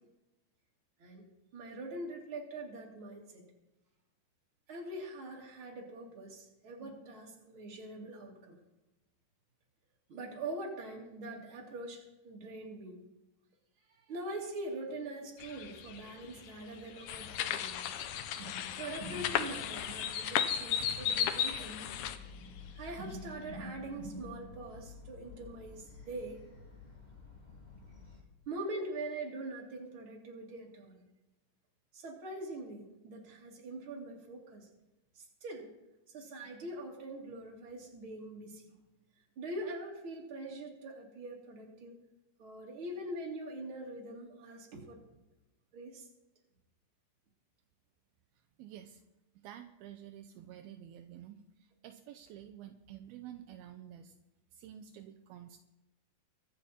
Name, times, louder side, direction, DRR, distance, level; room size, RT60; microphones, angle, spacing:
voice 1, 1.5-3.4 4.7-8.6 10.1-13.0 14.1-17.8 18.4-21.9 22.7-26.4 28.5-31.0 31.9-34.7 35.1-35.7 36.1-38.6 39.4-42.0 42.4-45.0 45.7-46.1, right 2 dB, 35° right, -1 dB, 3.1 m, -43 dB
sound 1, 15.4-22.7, left 8 dB, 70° left, 2.3 m, -38 dB
sound 2, 17.1-22.2, left 10 dB, 85° left, 1.7 m, -37 dB
sound 3, 21.5-28.2, left 4 dB, 15° left, 1.8 m, -52 dB
voice 2, 48.6-49.0 49.4-54.2 54.5-55.6, right 10 dB, 80° right, 7 dB, 2.5 m, -50 dB
24.0 x 8.6 x 4.3 m, 1.0 s
omnidirectional pair, 4.4 m